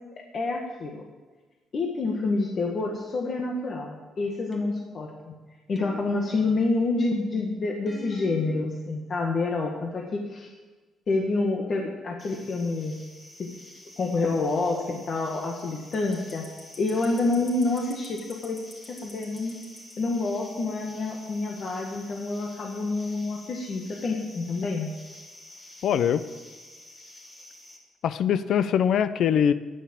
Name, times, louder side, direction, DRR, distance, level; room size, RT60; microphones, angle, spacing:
voice 1, 0.3-1.0 1.7-5.3 5.7-10.5 11.1-12.9 13.4-13.5 14.0-16.5 16.8-18.6 18.9-19.6 20.0-24.9, left 3 dB, 50° left, 0 dB, 1.6 m, -28 dB
sound 1, 4.5-5.0 5.8-6.6 7.9-8.7, equal, 5° left, 1.3 m, -44 dB
sound 2, 12.2-27.8, left 1 dB, 30° left, 3.5 m, -48 dB
voice 2, 25.8-26.2 28.0-29.5, left 8 dB, 70° left, 14 dB, 0.6 m, -22 dB
10.0 x 9.5 x 7.6 m, 1.3 s
cardioid pair, 90°, 0 cm